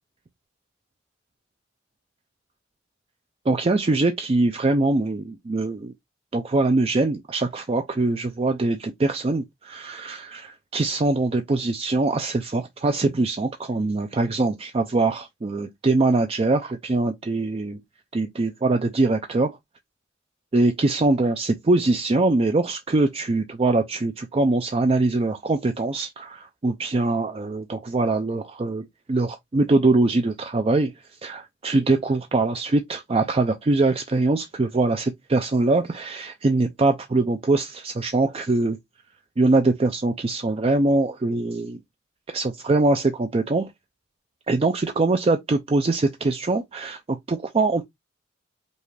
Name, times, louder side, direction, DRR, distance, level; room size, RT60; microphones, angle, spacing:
voice 1, 3.5-5.9 6.3-17.8 18.1-19.6 20.5-30.9 31.2-38.8 39.4-41.8 42.3-43.7 44.5-47.9, right 2 dB, 30° right, 0.4 m, -23 dB
5.2 x 2.4 x 3.2 m
head